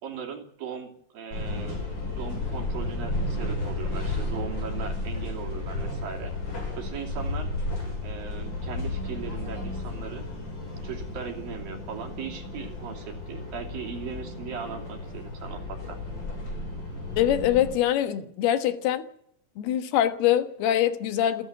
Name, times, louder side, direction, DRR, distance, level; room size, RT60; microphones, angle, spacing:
voice 1, 0.0-1.8 2.2-6.3 6.8-7.5 8.0-10.3 10.8-16.0, right 7 dB, 65° right, 4.4 m, -38 dB
sound 1, 1.3-17.8, left 2 dB, 30° left, 7.2 m, -33 dB
voice 2, 17.2-19.1 19.6-21.5, left 11 dB, 80° left, 3.3 m, -24 dB
29.0 x 10.5 x 9.2 m
omnidirectional pair, 4.5 m